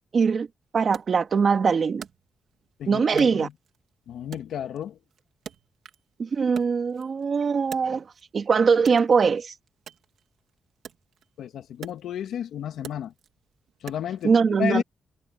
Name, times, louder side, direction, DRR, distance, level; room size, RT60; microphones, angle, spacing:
voice 1, 0.1-0.5 0.7-2.1 2.9-3.5 6.2-8.1 8.3-9.5 14.2-14.8, right 5 dB, 45° right, 2.4 m, -22 dB
Wood, 0.9-2.7 3.2-3.9 4.3-6.1 6.4-8.4 8.8-14.3, right 8 dB, 75° right, 2.9 m, -45 dB
voice 2, 2.8-3.5 4.1-5.0 11.4-13.1 13.8-14.3 14.6-14.8, left 9 dB, 90° left, 2.2 m, -31 dB
wide cardioid pair, 135°, 0 cm